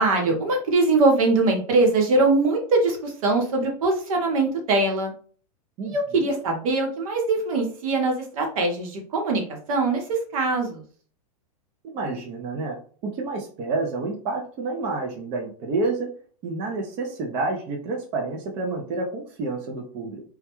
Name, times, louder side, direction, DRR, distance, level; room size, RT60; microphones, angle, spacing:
voice 1, 0.0-5.1 5.9-9.4 9.7-10.8, right 3 dB, 65° right, 2 dB, 0.9 m, -22 dB
voice 2, 11.9-12.8 13.0-16.1 16.4-20.2, right 3 dB, 25° right, 0 dB, 0.4 m, -29 dB
2.2 x 2.1 x 2.9 m, 0.43 s
supercardioid pair, 150°, 20 cm